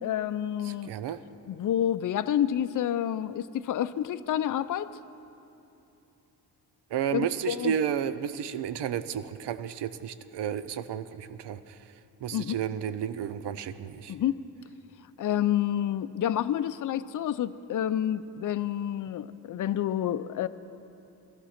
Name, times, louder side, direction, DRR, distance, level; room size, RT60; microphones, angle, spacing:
voice 1, 0.0-0.9 1.5-4.9 7.1-7.7 12.3-12.5 14.1-14.4 15.2-20.5, left 10 dB, 50° left, 12 dB, 0.5 m, -29 dB
voice 2, 0.6-1.2 6.9-11.8 12.2-14.1, right 9 dB, 85° right, 13 dB, 0.7 m, -32 dB
18.0 x 13.0 x 5.8 m, 2.9 s
cardioid pair, 100°, 40 cm